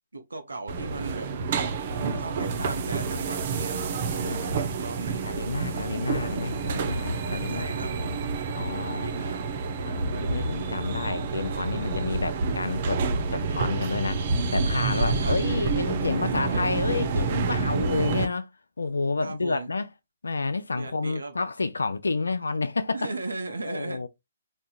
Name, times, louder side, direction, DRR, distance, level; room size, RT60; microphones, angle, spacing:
voice 1, 0.1-1.3 2.1-3.9 4.2-5.3 7.5-8.2 8.8-9.6 15.0-15.6 16.1-16.8 19.2-19.7 20.7-21.3 22.9-24.0, right 2 dB, 85° right, 0.7 m, -37 dB
sound 1, 0.7-18.3, right 4 dB, 45° right, 0.8 m, -28 dB
voice 2, 1.9-2.7 4.0-4.4 5.2-8.0 8.5-9.3 9.8-14.2 14.5-18.5 18.8-19.9 20.2-23.1 23.7-24.1, left 3 dB, 85° left, 0.4 m, -30 dB
4.3 x 2.7 x 2.3 m
figure-of-eight pair, 135°, 0 cm